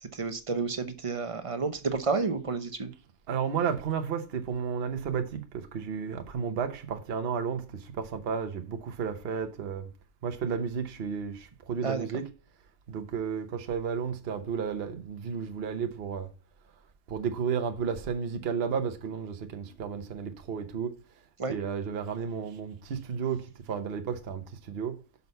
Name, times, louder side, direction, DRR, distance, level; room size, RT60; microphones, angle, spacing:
voice 1, 0.1-2.9 11.8-12.1 21.4-21.5, right 4 dB, 30° right, 0.7 m, -30 dB
voice 2, 3.3-9.9 10.2-12.3 12.9-16.3 17.1-20.9 21.5-24.9, right 6 dB, 50° right, 1.0 m, -32 dB
6.1 x 5.5 x 5.3 m
omnidirectional pair, 1.5 m